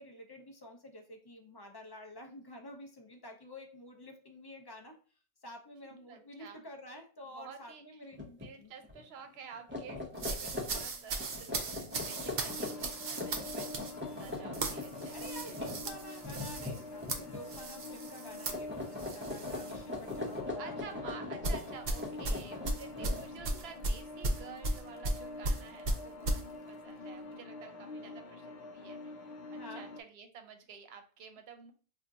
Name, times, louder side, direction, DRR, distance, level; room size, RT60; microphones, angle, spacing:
voice 1, 0.0-5.0 5.4-8.7 10.5-10.8 15.0-21.1 23.0-23.2 27.6-27.8 29.6-29.9, left 1 dB, 35° left, 3 dB, 0.4 m, -50 dB
voice 2, 5.8-6.6 7.2-8.0 8.4-15.2 15.4-15.6 20.6-31.7, right 6 dB, 80° right, 7 dB, 0.8 m, -51 dB
sound 1, 8.1-8.5 8.8-9.0 9.5-17.6 17.9-18.2 18.5-23.6, left 2 dB, 15° right, 0.6 m, -41 dB
sound 2, 10.2-19.8 20.1-20.4 21.4-26.4, right 2 dB, 55° right, 0.6 m, -36 dB
sound 3, 11.9-30.0, left 2 dB, 85° left, 0.8 m, -46 dB
2.5 x 2.3 x 3.8 m, 0.39 s
omnidirectional pair, 1.0 m